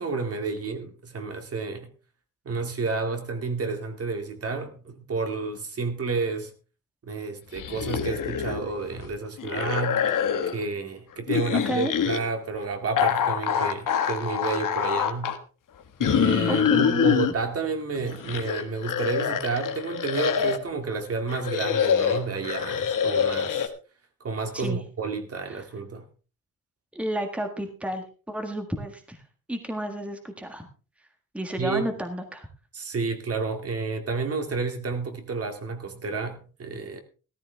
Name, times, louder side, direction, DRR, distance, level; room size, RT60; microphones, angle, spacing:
voice 1, 0.0-1.9 2.5-6.5 7.0-10.0 10.5-15.3 16.0-23.7 24.2-26.1 31.6-31.9 32.7-37.0, right 4 dB, 45° right, 2.2 m, -30 dB
sound 1, 7.6-8.7 9.0-10.6 11.3-12.2 13.0-15.4 16.0-17.3 18.0-20.7 21.3-23.7, left 8 dB, 65° left, 1.6 m, -25 dB
voice 2, 11.5-11.9 16.5-17.1 24.5-24.8 25.5-25.6 26.9-29.2 29.5-30.7 31.3-32.5, equal, 5° right, 1.6 m, -31 dB
15.5 x 14.0 x 3.4 m
wide cardioid pair, 175°, 33 cm